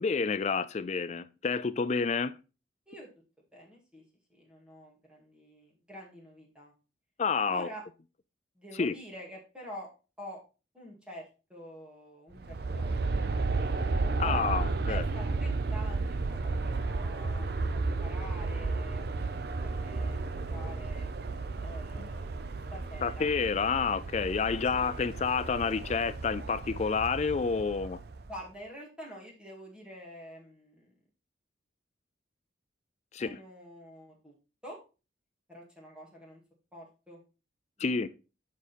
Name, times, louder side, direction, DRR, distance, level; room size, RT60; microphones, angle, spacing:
voice 1, 0.0-2.4 7.2-7.7 8.7-9.0 14.2-15.0 22.0-22.1 23.0-28.0 33.1-33.4 37.8-38.1, left 5 dB, 35° left, 0.4 m, -29 dB
voice 2, 3.5-4.0 4.3-6.7 7.5-7.8 8.6-9.9 10.2-10.4 10.7-13.3 14.2-21.1 21.6-22.3 22.7-23.3 24.6-24.9 28.3-30.9 33.2-34.3 34.6-34.8 35.5-36.4 36.7-37.2 37.8-38.1, equal, 5° right, 2.0 m, -47 dB
Aircraft, 12.3-28.4, right 3 dB, 55° right, 0.6 m, -33 dB
7.4 x 5.2 x 4.2 m
head